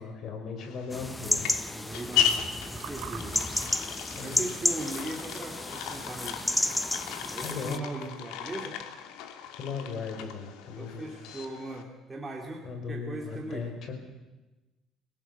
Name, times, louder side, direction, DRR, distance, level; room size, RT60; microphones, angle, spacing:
voice 1, 0.0-1.5 4.2-4.4 7.4-7.8 9.6-11.1 12.6-13.9, left 5 dB, 45° left, 5 dB, 5.1 m, -37 dB
sound 1, 0.6-11.8, left 9 dB, 85° left, 2.6 m, -36 dB
sound 2, 0.9-7.8, left 1 dB, 5° left, 0.8 m, -32 dB
voice 2, 1.7-3.4 4.2-6.5 7.3-8.8 10.8-13.7, right 2 dB, 15° right, 0 dB, 2.5 m, -39 dB
Water / Fill (with liquid), 2.2-7.3, right 11 dB, 65° right, 1.8 m, -48 dB
26.5 x 18.0 x 8.2 m, 1.1 s
cardioid pair, 140°, 0 cm